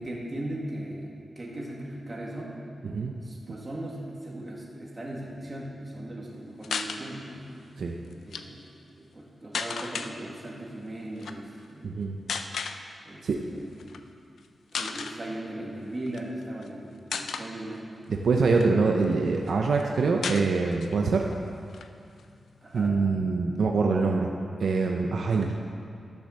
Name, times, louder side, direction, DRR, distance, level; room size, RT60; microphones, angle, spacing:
voice 1, 0.0-2.6 3.2-7.5 8.2-8.6 9.0-12.0 13.0-14.0 14.7-17.8 22.6-23.0, right 1 dB, 30° right, -3 dB, 2.3 m, -38 dB
sound 1, 6.6-7.0 8.1-8.4 9.5-10.1 11.2-11.4 12.3-12.8 13.8-14.0 14.4-14.5 14.7-15.2 16.1-16.7 17.1-17.5 18.1-19.1 19.5-19.6 19.8-19.9 20.2-21.0 21.3-21.4 21.7-22.8, left 5 dB, 85° left, 0.6 m, -34 dB
voice 2, 11.8-12.1 13.2-13.4 18.1-21.3 22.7-24.3 24.6-25.5, right 4 dB, 75° right, 1 dB, 0.7 m, -24 dB
12.5 x 7.0 x 6.6 m, 2.4 s
wide cardioid pair, 105°, 0 cm